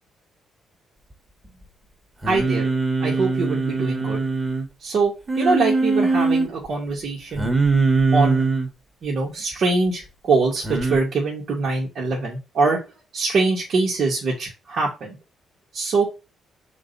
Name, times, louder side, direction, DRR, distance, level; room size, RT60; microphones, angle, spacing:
Singing, 2.2-4.7 5.3-6.5 7.4-8.7 10.6-11.0, right 3 dB, 20° right, 2.2 m, -21 dB
voice 1, 2.3-2.7 3.0-4.2 4.8-7.5 8.1-8.5 9.0-12.8 13.1-15.2 15.7-16.1, right 3 dB, 60° right, -4 dB, 2.4 m, -23 dB
6.1 x 3.9 x 4.2 m, 0.28 s
cardioid pair, 90°, 0 cm